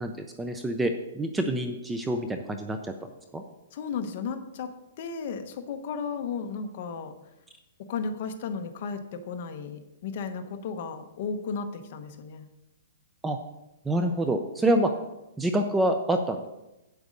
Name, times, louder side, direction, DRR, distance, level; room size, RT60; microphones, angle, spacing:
voice 1, 0.0-2.9 3.3-3.4 13.2-13.4 13.9-14.9 15.4-16.4, right 1 dB, 5° right, 6 dB, 0.4 m, -27 dB
voice 2, 3.7-4.7 5.0-7.1 7.9-12.5, left 5 dB, 40° left, 6 dB, 1.0 m, -34 dB
8.4 x 8.0 x 5.2 m, 0.95 s
hypercardioid pair, 175°, 0 cm